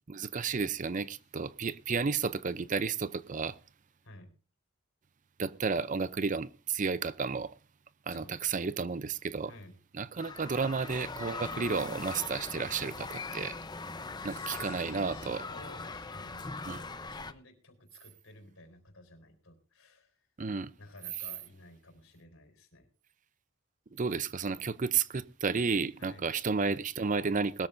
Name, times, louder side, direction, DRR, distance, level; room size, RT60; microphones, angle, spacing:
voice 1, 0.1-3.6 5.4-7.5 8.1-9.5 9.9-13.6 14.2-15.5 16.7-16.8 20.4-20.7 23.9-27.7, right 5 dB, 40° right, 0.5 m, -32 dB
voice 2, 8.1-8.7 9.4-9.7 14.2-20.3 20.8-22.9 26.0-26.3, left 2 dB, 75° left, 4.2 m, -54 dB
sound 1, 10.2-17.3, left 3 dB, 20° left, 0.7 m, -41 dB
21.0 x 13.5 x 2.6 m
head